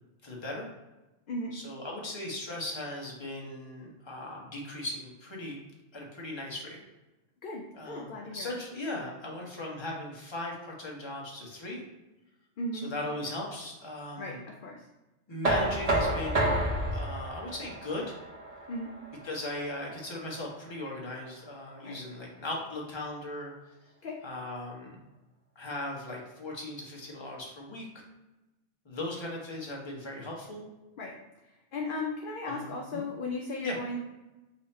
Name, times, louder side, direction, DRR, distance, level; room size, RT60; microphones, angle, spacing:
voice 1, 0.2-0.7 1.5-5.6 5.9-6.8 7.7-11.8 12.7-14.4 15.3-16.6 16.9-18.1 19.2-23.5 24.2-25.0 25.5-28.0 28.8-30.7 32.4-33.0 33.6-33.8, left 1 dB, 25° left, -2 dB, 0.9 m, -38 dB
voice 2, 7.4-8.5 12.6-12.9 14.2-14.3 14.6-14.8 18.7-18.9 21.8-22.0 24.0-24.2 31.0-31.2 31.7-34.0, left 2 dB, 55° left, 0 dB, 0.6 m, -36 dB
Knock, 15.4-21.2, right 1 dB, 35° right, 0.8 m, -31 dB
4.3 x 2.7 x 4.2 m, 1.1 s
omnidirectional pair, 1.3 m